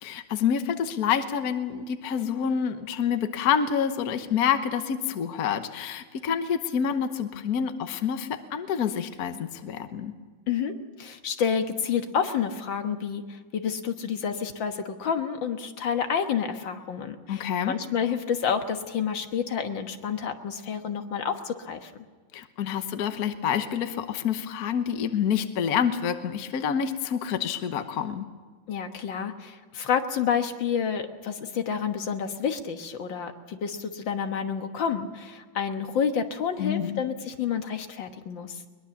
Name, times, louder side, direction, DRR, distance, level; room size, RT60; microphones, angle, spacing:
voice 1, 0.0-10.1 17.3-17.8 22.3-28.3 36.6-36.9, left 8 dB, 55° left, 8 dB, 1.5 m, -27 dB
voice 2, 10.5-21.9 28.7-38.6, left 7 dB, 75° left, 6 dB, 2.1 m, -29 dB
22.0 x 21.5 x 7.1 m, 1.4 s
omnidirectional pair, 2.1 m